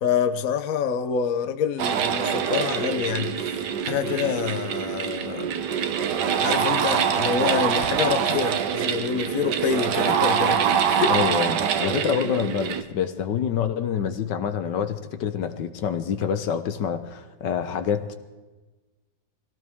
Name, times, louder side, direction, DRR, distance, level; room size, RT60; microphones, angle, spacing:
voice 1, 0.0-5.6 6.4-11.2, left 7 dB, 55° left, 9 dB, 1.1 m, -27 dB
sound 1, 1.8-12.8, right 7 dB, 70° right, 1.4 m, -24 dB
voice 2, 11.0-18.1, left 7 dB, 75° left, 9 dB, 1.6 m, -27 dB
21.5 x 17.0 x 3.6 m, 1.2 s
omnidirectional pair, 2.0 m